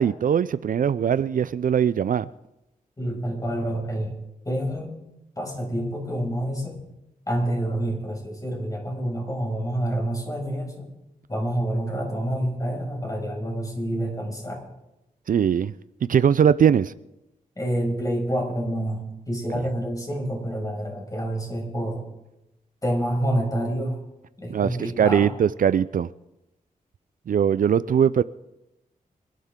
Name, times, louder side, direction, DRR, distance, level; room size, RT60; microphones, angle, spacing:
voice 1, 0.0-2.3 15.3-15.7 16.1-16.9 19.5-19.6 24.5-26.1 27.3-28.2, right 8 dB, 65° right, 16 dB, 0.4 m, -21 dB
voice 2, 3.0-4.1 4.4-5.0 5.4-6.7 7.3-10.9 11.3-14.6 17.6-22.0 22.8-24.0 24.4-25.3, right 1 dB, 25° left, 0 dB, 6.2 m, -28 dB
25.5 x 11.5 x 3.8 m, 0.90 s
cardioid pair, 70°, 15 cm